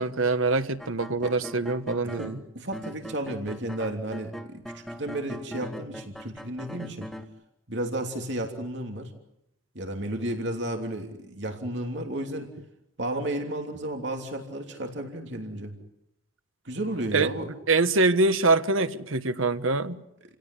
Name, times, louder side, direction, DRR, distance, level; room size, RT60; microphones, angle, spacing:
voice 1, 0.0-2.4 17.1-17.3 17.7-20.0, right 3 dB, 90° right, 1.4 m, -24 dB
sound 1, 0.8-2.4 2.7-7.2, equal, ahead, 1.5 m, -40 dB
voice 2, 2.0-7.1 7.7-9.1 9.7-12.5 13.0-15.7 16.6-17.5, right 1 dB, 60° right, 3.1 m, -33 dB
29.5 x 17.0 x 9.9 m
head